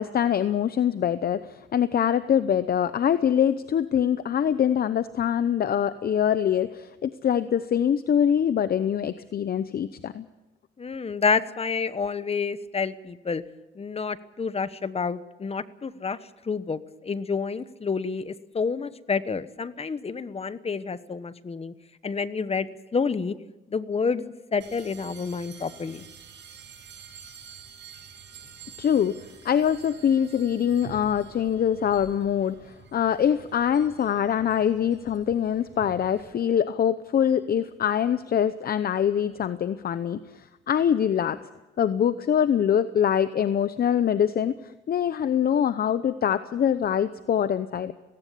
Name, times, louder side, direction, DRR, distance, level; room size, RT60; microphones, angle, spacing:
voice 1, 0.0-10.2 28.8-29.2 29.4-41.4 41.8-47.9, left 9 dB, 50° left, 13 dB, 0.8 m, -24 dB
voice 2, 10.8-13.4 13.7-16.2 16.4-21.7 22.0-23.3 23.7-26.0, left 5 dB, 30° left, 14 dB, 1.1 m, -29 dB
sound 1, 24.6-36.3, right 6 dB, 65° right, 6.3 m, -48 dB
18.5 x 17.5 x 8.4 m, 1.1 s
cardioid pair, 90°, 20 cm